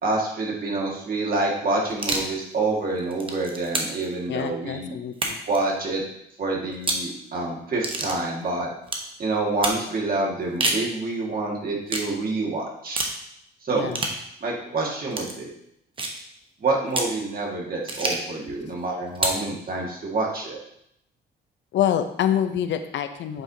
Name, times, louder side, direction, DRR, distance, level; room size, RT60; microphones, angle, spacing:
voice 1, 0.0-4.9 5.5-6.0 6.4-8.7 9.2-13.0 13.6-13.9 14.4-15.5 16.6-20.6, right 2 dB, 45° right, -2 dB, 1.8 m, -27 dB
sound 1, 1.9-2.3 3.0-4.1 5.1-5.6 6.7-7.1 7.8-8.2 8.9-9.1 9.6-9.8 10.4-10.9 11.9-12.1 13.0-13.2 13.9-14.2 15.1-15.3 16.0-16.2 16.9-17.2 17.9-18.3 19.1-19.5, right 2 dB, 25° right, 0.9 m, -27 dB
voice 2, 4.3-5.4 13.7-14.0 21.7-23.4, left 10 dB, 70° left, 9 dB, 0.6 m, -26 dB
7.8 x 4.5 x 2.7 m, 0.76 s
cardioid pair, 90°, 20 cm